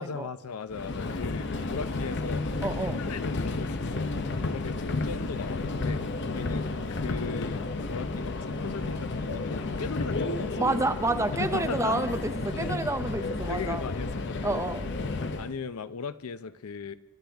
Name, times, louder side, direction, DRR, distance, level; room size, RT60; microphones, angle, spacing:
voice 1, 0.0-10.6 11.3-12.0 13.5-14.7 15.4-16.9, left 5 dB, 90° left, 14 dB, 0.6 m, -38 dB
Subway metro underground, 0.7-15.5, left 3 dB, 55° left, 0.7 m, -32 dB
voice 2, 2.6-3.0 10.6-13.9 14.4-14.9, right 2 dB, 15° right, 9 dB, 0.6 m, -29 dB
25.0 x 12.0 x 3.5 m, 1.1 s
head